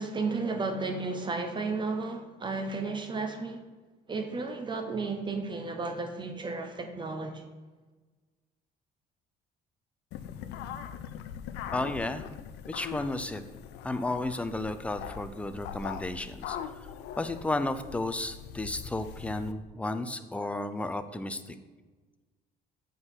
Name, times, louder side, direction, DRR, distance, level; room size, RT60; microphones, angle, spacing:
voice 1, 0.0-3.6 4.1-7.5, right 3 dB, 25° right, 4 dB, 0.8 m, -33 dB
sound 1, 10.1-19.5, left 9 dB, 85° left, 0.5 m, -41 dB
voice 2, 11.7-12.2 12.6-13.4 13.8-16.6 17.2-21.6, left 2 dB, 5° left, 10 dB, 0.5 m, -33 dB
7.7 x 3.8 x 6.1 m, 1.3 s
cardioid pair, 110°, 17 cm